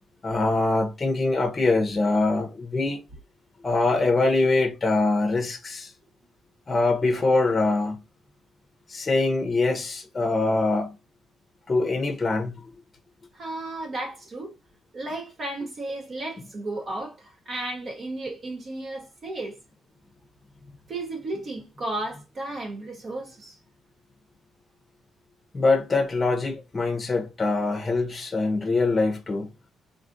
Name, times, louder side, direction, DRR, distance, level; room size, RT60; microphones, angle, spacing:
voice 1, 0.2-3.0 3.6-5.9 6.7-8.0 8.9-10.9 11.7-12.6 25.5-29.5, left 3 dB, 30° left, 0.6 m, -23 dB
voice 2, 13.3-14.5 14.9-19.6 20.9-23.6, right 2 dB, 45° right, 0.8 m, -34 dB
3.6 x 2.4 x 2.5 m
cardioid pair, 90°, 0 cm